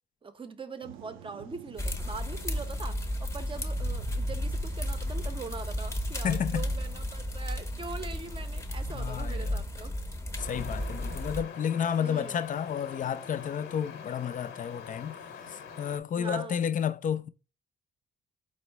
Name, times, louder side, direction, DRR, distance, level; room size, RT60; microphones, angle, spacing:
voice 1, 0.2-9.9 12.0-12.4 16.2-16.6, right 4 dB, 25° right, 0.6 m, -42 dB
sound 1, 0.8-7.0, right 8 dB, 90° right, 0.4 m, -48 dB
sound 2, 1.8-11.4, left 1 dB, 15° left, 0.7 m, -33 dB
voice 2, 6.2-6.7 8.9-9.6 10.4-15.2 15.5-17.3, left 8 dB, 40° left, 0.4 m, -31 dB
sound 3, 10.4-16.0, left 6 dB, 80° left, 1.0 m, -44 dB
4.4 x 2.0 x 4.4 m
cardioid pair, 90°, 20 cm